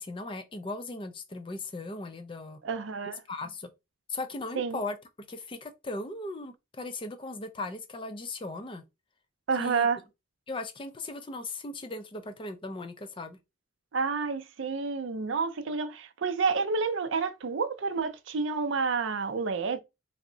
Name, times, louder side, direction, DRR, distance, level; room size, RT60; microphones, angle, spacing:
voice 1, 0.0-2.6 3.3-3.7 4.1-5.0 5.3-8.8 9.6-9.9 10.5-13.4, left 2 dB, 25° left, 0.4 m, -38 dB
voice 2, 2.6-3.2 4.6-4.8 9.5-10.0 13.9-19.8, right 4 dB, 65° right, 0.5 m, -29 dB
3.5 x 2.0 x 3.7 m
head